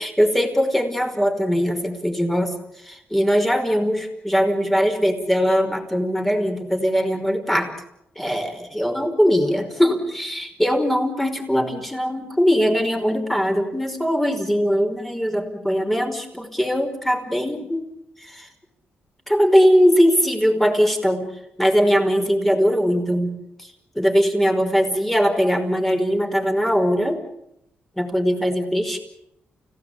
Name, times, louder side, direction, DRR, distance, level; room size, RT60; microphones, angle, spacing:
voice 1, 0.0-2.6 2.8-7.7 8.2-17.8 18.2-18.5 19.3-21.3 21.6-23.4 24.0-27.2 28.0-29.0, equal, 5° left, 5 dB, 5.3 m, -20 dB
29.5 x 17.5 x 8.6 m, 0.79 s
cardioid pair, 95°, 4 cm